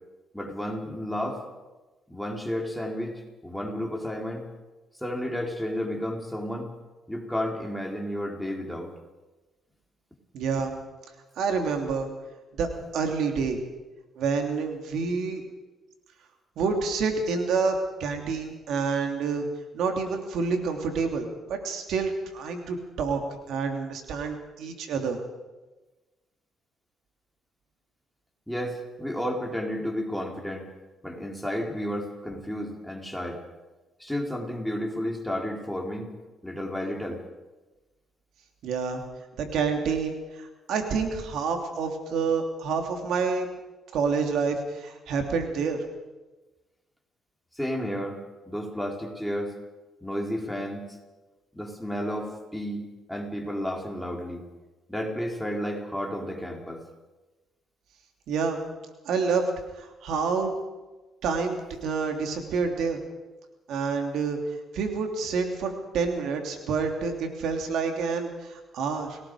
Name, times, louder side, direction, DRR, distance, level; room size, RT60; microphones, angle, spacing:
voice 1, 0.3-1.4 2.1-4.5 5.0-6.7 7.1-8.9 28.5-30.7 31.0-33.4 34.0-36.2 36.4-37.2 47.5-48.2 48.5-49.5 50.0-50.9 51.5-54.4 54.9-56.8, equal, 5° left, 1 dB, 4.1 m, -32 dB
voice 2, 10.3-10.7 11.4-12.1 12.6-13.6 14.2-15.4 16.6-19.5 19.7-23.2 23.5-25.2 38.6-39.0 39.4-43.5 43.9-45.8 58.3-58.6 59.0-59.5 59.8-60.5 61.2-63.0 63.7-64.4 64.7-69.2, right 5 dB, 80° right, 4 dB, 3.1 m, -28 dB
29.0 x 18.5 x 5.0 m, 1.1 s
cardioid pair, 90°, 0 cm